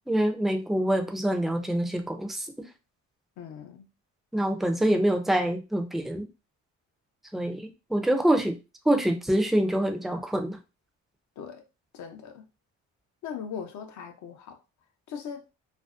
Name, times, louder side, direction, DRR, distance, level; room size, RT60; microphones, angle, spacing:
voice 1, 0.1-2.7 4.3-6.3 7.3-8.6 8.9-10.6, right 1 dB, ahead, 0.3 m, -25 dB
voice 2, 3.4-3.9 11.4-11.6 11.9-12.5 13.2-14.6 15.1-15.4, left 7 dB, 70° left, 0.6 m, -39 dB
2.5 x 2.0 x 2.4 m
cardioid pair, 90°, 30 cm